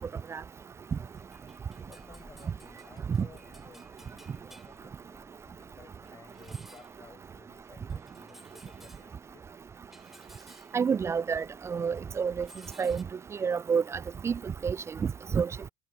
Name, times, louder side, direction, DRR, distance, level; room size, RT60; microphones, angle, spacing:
sound 1, 1.1-11.8 12.1-13.0, equal, ahead, 3.7 m, -57 dB
voice 1, 1.9-9.4, left 5 dB, 25° left, 6.1 m, -57 dB
voice 2, 10.7-12.5 12.8-13.0 13.4-13.8 14.2-14.3 14.6-14.8 15.3-15.5, right 6 dB, 20° right, 0.4 m, -28 dB
figure-of-eight pair, 65°, 12 cm